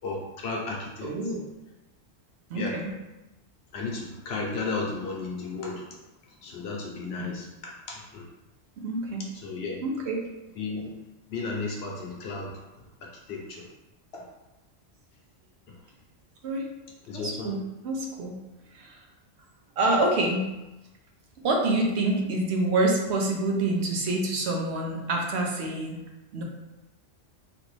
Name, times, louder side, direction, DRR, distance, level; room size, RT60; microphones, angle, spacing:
voice 1, 0.0-1.1 2.5-2.8 3.7-6.0 6.4-8.3 9.4-9.8 10.6-11.0 11.3-12.5 13.0-13.6 14.1-14.2 17.1-17.5, left 3 dB, 60° left, -1 dB, 1.0 m, -34 dB
voice 2, 1.0-1.4 2.5-2.9 7.2-7.4 8.8-9.3 9.8-10.2 16.4-16.7 17.1-18.4 18.7-19.0 19.8-20.5 21.4-26.0 26.3-26.4, right 2 dB, 65° right, 1 dB, 0.8 m, -27 dB
3.2 x 2.5 x 3.2 m, 0.99 s
omnidirectional pair, 1.2 m